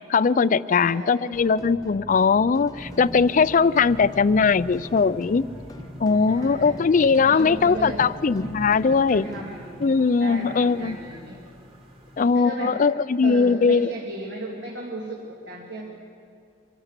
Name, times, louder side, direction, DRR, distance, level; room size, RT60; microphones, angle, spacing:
voice 1, 0.1-5.4 6.0-9.3 9.8-11.0 12.2-13.9, left 5 dB, 45° left, 17 dB, 0.4 m, -20 dB
voice 2, 0.7-1.3 6.2-6.9 7.2-8.1 9.1-9.9 10.2-11.5 12.3-12.8 13.2-15.9, right 1 dB, 75° right, -2 dB, 2.5 m, -36 dB
sound 1, 1.3-9.4, left 1 dB, 20° left, 0.8 m, -43 dB
sound 2, 2.7-12.4, equal, 30° right, 2.2 m, -43 dB
25.0 x 15.0 x 8.2 m, 2.4 s
head